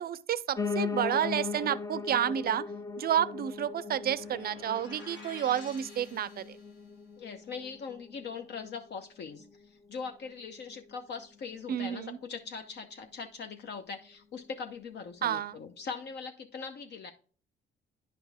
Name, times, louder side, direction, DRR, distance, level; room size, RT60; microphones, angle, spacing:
voice 1, 0.0-2.6 3.0-6.4 11.7-12.2 15.2-15.6, right 10 dB, 50° right, 0.5 m, -30 dB
Piano, 0.6-9.7 10.1-11.2 11.5-11.6 11.8-11.9 12.2-12.3 12.8-12.9, left 4 dB, 15° left, 0.4 m, -39 dB
sound 1, 4.1-6.9, left 2 dB, 80° left, 2.1 m, -51 dB
voice 2, 7.2-17.1, left 5 dB, 60° left, 0.7 m, -41 dB
10.0 x 4.3 x 3.4 m
cardioid pair, 90°, 20 cm